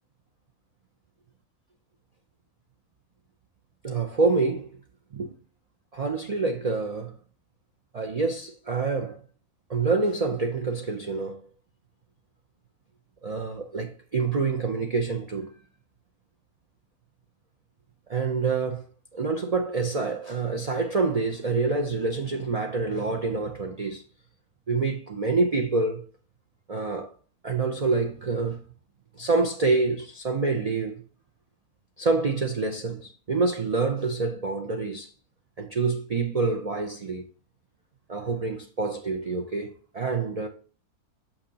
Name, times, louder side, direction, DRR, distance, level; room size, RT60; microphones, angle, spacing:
voice 1, 3.8-4.8 5.1-5.3 5.9-7.2 7.9-9.2 9.7-11.4 13.2-15.5 18.1-18.8 19.1-24.0 24.7-26.0 26.7-27.1 27.4-28.6 29.1-31.0 32.0-35.1 35.6-37.2 38.1-40.5, right 4 dB, 85° right, 0.3 m, -27 dB
6.6 x 5.7 x 2.8 m
omnidirectional pair, 1.6 m